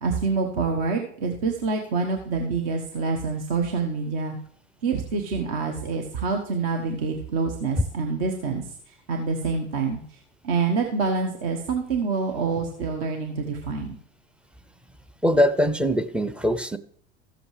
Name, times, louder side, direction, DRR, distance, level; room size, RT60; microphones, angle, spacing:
voice 1, 0.0-4.3 4.8-10.2 10.4-14.0, right 4 dB, 60° right, 3 dB, 1.2 m, -27 dB
voice 2, 15.2-16.8, equal, 5° right, 10 dB, 0.4 m, -22 dB
14.0 x 7.7 x 3.2 m, 0.63 s
hypercardioid pair, 80°, 33 cm